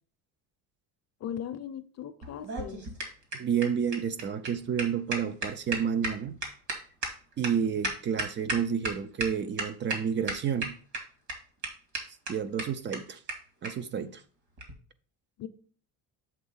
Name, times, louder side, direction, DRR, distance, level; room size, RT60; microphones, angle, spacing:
voice 1, 1.2-2.8 15.4-15.5, left 9 dB, 45° left, 0.7 m, -38 dB
sound 1, 2.2-8.9 9.2-9.3 9.6-10.0 10.3-11.0 11.3-11.4 11.6-11.7 11.9-12.0 12.3-12.4 12.6-12.7 12.9-13.0 13.3-13.4 13.6-13.7 14.6-14.7, right 2 dB, 50° right, 2.3 m, -33 dB
voice 2, 3.3-6.4 7.4-10.7 12.3-13.2 13.6-14.2, right 7 dB, 30° right, 0.5 m, -30 dB
7.5 x 3.6 x 5.5 m
cardioid pair, 140°, 37 cm